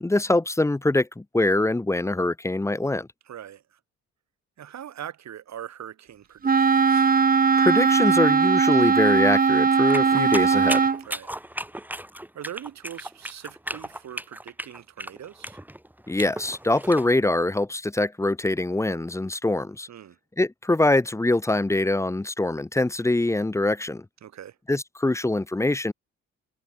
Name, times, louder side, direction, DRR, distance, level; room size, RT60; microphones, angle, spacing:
voice 1, 0.0-3.1 7.6-10.9 16.1-19.9 20.4-24.0 24.7-25.9, left 2 dB, 10° left, 0.8 m, -23 dB
voice 2, 3.3-3.8 4.6-7.1 11.0-11.3 12.3-15.6 19.9-20.2 24.2-24.6, right 10 dB, 65° right, 4.6 m, -41 dB
Wind instrument woodwind instrument, 6.4-11.0, right 5 dB, 30° right, 1.2 m, -19 dB
sound 1, 9.9-17.1, right 1 dB, 5° right, 6.1 m, -35 dB
cardioid pair, 90°, 30 cm